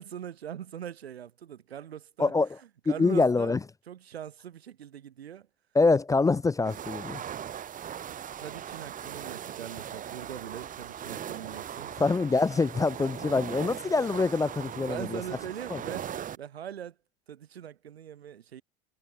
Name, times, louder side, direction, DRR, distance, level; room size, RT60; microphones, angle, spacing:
voice 1, 0.0-2.3 2.9-3.6 3.9-5.5 8.1-12.0 14.9-16.9 17.3-18.6, right 9 dB, 80° right, 1.1 m, -41 dB
voice 2, 2.9-3.6 5.7-7.2 12.0-15.2 15.7-15.8, left 3 dB, 10° left, 0.5 m, -25 dB
sound 1, 6.6-16.4, right 9 dB, 25° right, 0.9 m, -39 dB
figure-of-eight pair, 75°, 31 cm